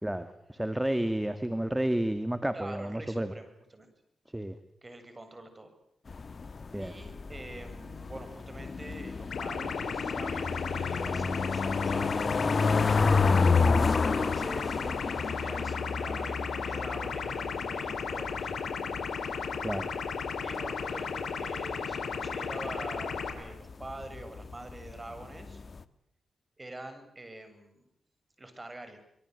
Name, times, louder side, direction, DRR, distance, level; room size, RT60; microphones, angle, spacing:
voice 1, 0.0-3.3 4.3-4.5 6.7-6.9 13.5-13.9 19.6-19.9, right 1 dB, 10° right, 11 dB, 2.1 m, -31 dB
voice 2, 2.5-3.9 4.8-5.7 6.8-12.8 14.0-18.6 20.4-25.6 26.6-27.9 28.4-29.0, right 2 dB, 25° right, 9 dB, 7.6 m, -45 dB
sound 1, 6.1-25.8, left 4 dB, 45° left, 1.5 m, -31 dB
sound 2, 9.3-23.3, left 5 dB, 70° left, 5.9 m, -35 dB
26.5 x 23.0 x 8.1 m, 0.71 s
cardioid pair, 65°, 0 cm